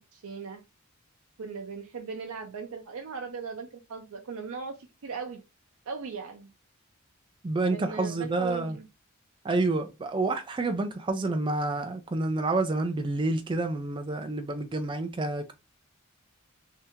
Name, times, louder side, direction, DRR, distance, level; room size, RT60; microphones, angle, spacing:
voice 1, 0.1-0.6 1.4-4.8 5.0-5.4 5.9-6.5 7.7-8.9, right 5 dB, 80° right, 0.5 m, -38 dB
voice 2, 7.4-8.8 9.4-15.5, right 2 dB, 25° right, 0.3 m, -28 dB
2.8 x 2.7 x 3.4 m
head